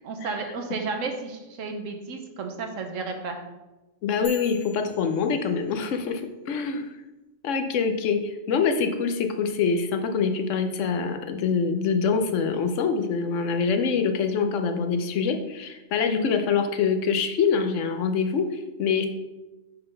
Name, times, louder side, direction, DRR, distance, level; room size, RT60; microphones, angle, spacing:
voice 1, 0.0-3.4, right 4 dB, 90° right, 4 dB, 1.2 m, -32 dB
voice 2, 4.0-6.9 7.4-19.1, left 5 dB, 80° left, 6 dB, 1.0 m, -25 dB
sound 1, 4.2-6.0, equal, 60° left, 2.6 m, -46 dB
5.9 x 3.8 x 5.4 m, 1.1 s
omnidirectional pair, 1.3 m